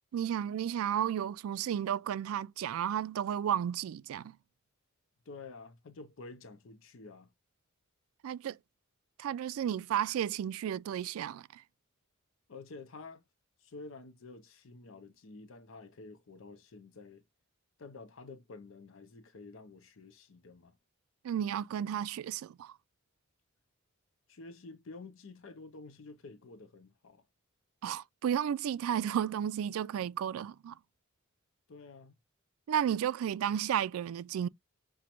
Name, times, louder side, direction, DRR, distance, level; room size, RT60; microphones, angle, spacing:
voice 1, 0.1-4.4 8.2-8.6 9.2-11.6 21.2-22.8 27.8-30.8 32.7-34.5, right 9 dB, 80° right, 0.3 m, -33 dB
voice 2, 5.3-7.3 12.5-13.2 13.6-17.2 17.8-20.8 24.3-27.3 31.7-32.2, left 3 dB, 65° left, 0.6 m, -50 dB
6.0 x 2.2 x 2.9 m
head